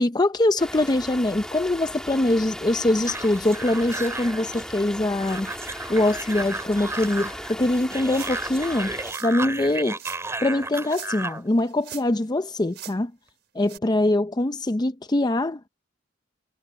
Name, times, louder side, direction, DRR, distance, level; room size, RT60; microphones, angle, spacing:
voice 1, 0.0-5.5 5.9-8.9 9.2-10.0 10.4-13.1 13.5-15.7, left 1 dB, 20° left, 0.5 m, -23 dB
sound 1, 0.6-9.1, equal, 5° left, 2.6 m, -37 dB
sound 2, 3.0-11.4, right 2 dB, 15° right, 2.9 m, -34 dB
sound 3, 8.1-8.5 9.0-9.3 10.0-10.2 10.8-11.3 11.6-12.3 12.7-13.0 13.6-13.8, right 12 dB, 60° right, 5.8 m, -41 dB
head